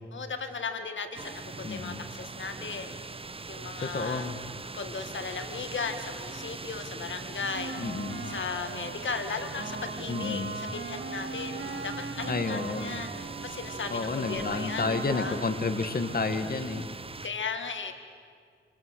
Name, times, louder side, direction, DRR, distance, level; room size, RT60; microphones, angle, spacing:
voice 1, 0.1-2.9 3.5-4.3 4.7-7.7 8.3-15.4 17.2-17.9, left 5 dB, 75° left, 7 dB, 1.9 m, -36 dB
sound 1, 1.2-17.3, right 3 dB, 30° right, 0.7 m, -41 dB
voice 2, 1.6-2.0 3.8-4.4 7.8-8.3 10.1-10.7 12.3-13.0 13.9-16.9, left 3 dB, 50° left, 7 dB, 1.8 m, -31 dB
sound 2, 7.5-16.3, right 4 dB, 80° right, 3.7 m, -40 dB
27.5 x 26.0 x 8.2 m, 2.1 s
cardioid pair, 70°, 20 cm